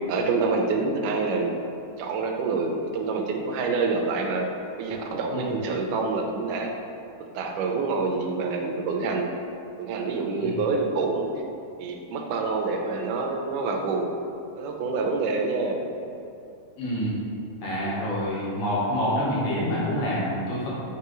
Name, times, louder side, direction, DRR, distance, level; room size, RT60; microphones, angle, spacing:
voice 1, 0.1-1.5 2.0-4.5 4.8-6.7 7.2-9.3 9.8-11.3 11.8-14.1 14.6-15.9, right 4 dB, 90° right, 2 dB, 2.2 m, -27 dB
voice 2, 16.8-17.2 17.6-20.7, equal, 65° left, -7 dB, 2.5 m, -27 dB
7.2 x 4.6 x 3.0 m, 2.6 s
omnidirectional pair, 3.5 m